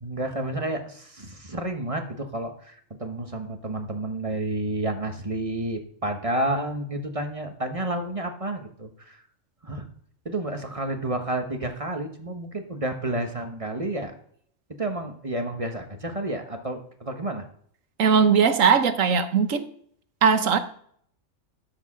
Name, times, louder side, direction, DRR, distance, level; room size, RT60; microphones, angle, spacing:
voice 1, 0.0-9.2 9.6-9.9 10.2-14.1 14.8-17.4, right 1 dB, 25° right, 1.3 m, -30 dB
voice 2, 18.0-19.7 20.2-20.6, right 6 dB, 75° right, 1.4 m, -19 dB
12.5 x 4.9 x 6.2 m
omnidirectional pair, 1.4 m